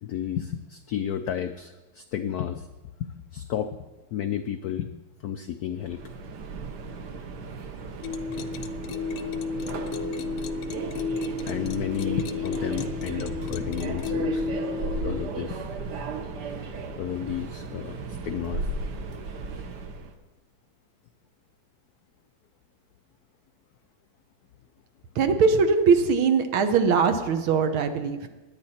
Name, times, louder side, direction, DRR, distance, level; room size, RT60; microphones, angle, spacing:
voice 1, 0.0-2.7 3.0-3.8 4.1-4.9 5.2-6.0 8.3-8.7 11.4-14.6 15.0-15.7 17.0-18.0 18.2-18.7, left 9 dB, 90° left, 8 dB, 0.8 m, -32 dB
Subway metro underground, 5.8-20.1, right 3 dB, 60° right, 1.4 m, -35 dB
sound 1, 8.0-15.3, left 4 dB, 70° left, 1.4 m, -32 dB
voice 2, 25.2-28.3, right 5 dB, 80° right, 7 dB, 1.8 m, -21 dB
17.5 x 10.0 x 4.3 m, 1.1 s
omnidirectional pair, 2.3 m